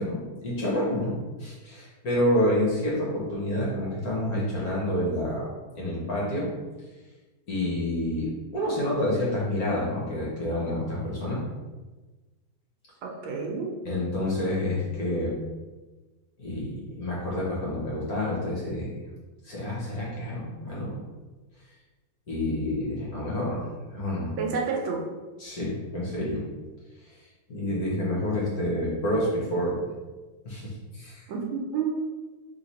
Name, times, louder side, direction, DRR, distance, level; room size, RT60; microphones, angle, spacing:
voice 1, 0.0-5.5 5.8-6.5 7.5-11.4 13.8-15.4 16.4-18.9 19.4-21.0 22.3-24.3 25.4-26.4 27.1-27.2 27.5-29.8 30.4-31.3, left 1 dB, 55° left, -5 dB, 1.2 m, -28 dB
voice 2, 13.0-13.7 24.4-25.0 31.3-31.9, right 5 dB, 75° right, 1 dB, 1.4 m, -29 dB
3.2 x 3.1 x 4.1 m, 1.2 s
omnidirectional pair, 2.2 m